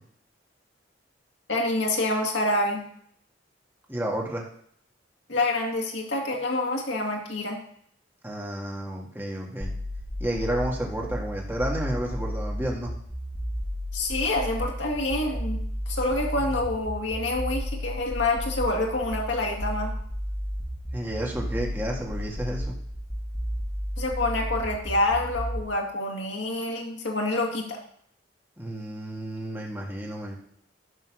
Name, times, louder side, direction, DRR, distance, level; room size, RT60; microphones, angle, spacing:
voice 1, 1.5-2.8 5.3-7.6 13.9-15.6 15.9-19.9 24.0-27.8, left 2 dB, 65° left, 0 dB, 2.2 m, -27 dB
voice 2, 3.9-4.4 8.2-9.7 10.2-12.9 20.9-22.7 28.6-30.3, right 1 dB, 10° right, -2 dB, 1.8 m, -31 dB
sound 1, 9.6-25.6, equal, 20° left, 1.9 m, -32 dB
11.5 x 4.2 x 6.2 m, 0.64 s
head